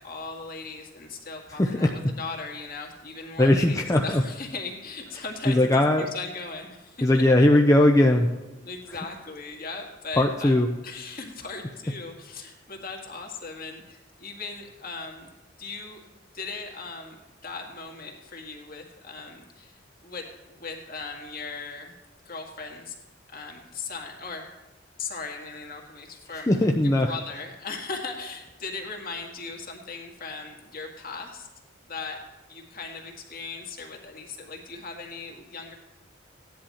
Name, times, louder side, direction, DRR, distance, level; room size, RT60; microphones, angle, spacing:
voice 1, 0.0-7.2 8.6-10.5 10.8-15.3 15.6-16.0 16.3-17.2 17.4-21.9 22.3-22.9 23.3-24.5 25.0-26.7 27.0-31.5 31.8-32.2 32.5-35.8, left 4 dB, 50° left, 2 dB, 1.9 m, -38 dB
voice 2, 1.6-1.9 3.4-4.2 5.5-6.1 7.0-8.3 10.2-10.7 26.5-27.1, left 1 dB, 15° left, 2 dB, 0.6 m, -19 dB
15.5 x 10.5 x 4.3 m, 1.1 s
head